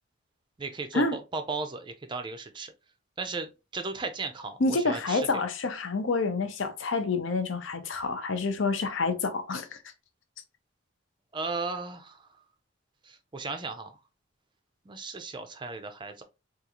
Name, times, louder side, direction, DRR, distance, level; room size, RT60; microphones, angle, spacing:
voice 1, 0.6-2.7 3.2-5.3 11.3-12.3 13.0-14.0 14.9-16.2, right 3 dB, 25° right, 0.4 m, -36 dB
voice 2, 4.6-9.7, left 3 dB, 70° left, 0.6 m, -28 dB
3.7 x 2.4 x 2.9 m
head